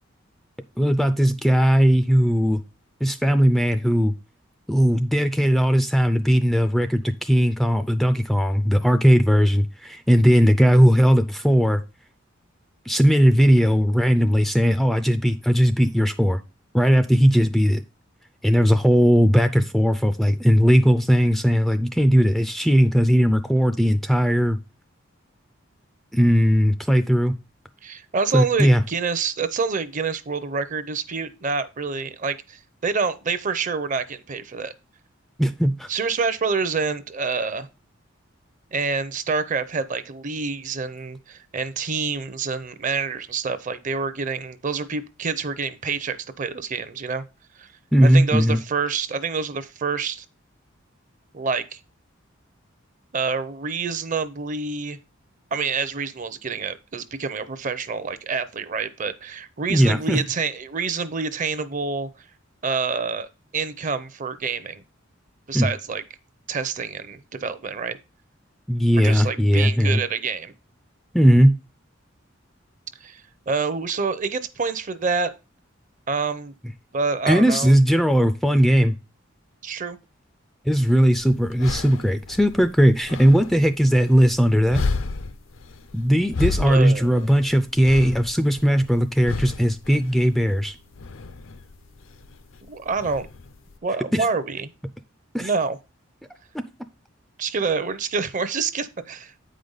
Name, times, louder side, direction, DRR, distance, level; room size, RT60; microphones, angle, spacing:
voice 1, 0.8-2.6 3.0-4.1 4.7-11.8 12.9-16.4 16.7-17.8 18.4-24.6 26.1-27.3 28.3-28.8 35.4-35.9 47.9-48.6 59.7-60.2 65.5-65.7 68.7-70.0 71.1-71.5 77.3-78.9 80.7-84.8 85.9-90.8 94.1-94.2 95.3-95.5 96.5-96.7, equal, ahead, 0.3 m, -18 dB
voice 2, 27.8-34.7 35.9-37.7 38.7-47.2 47.6-47.7 48.0-50.2 51.3-51.8 53.1-55.0 55.5-62.1 62.6-63.3 63.5-64.8 65.5-66.0 66.5-68.0 69.0-70.5 73.0-75.3 76.1-76.5 76.9-77.7 79.6-80.0 86.6-87.3 92.7-93.3 93.8-94.7 95.4-95.8 97.4-99.3, right 5 dB, 40° right, 0.6 m, -27 dB
sound 1, 80.7-93.8, left 3 dB, 80° left, 0.6 m, -33 dB
8.5 x 5.1 x 3.9 m
head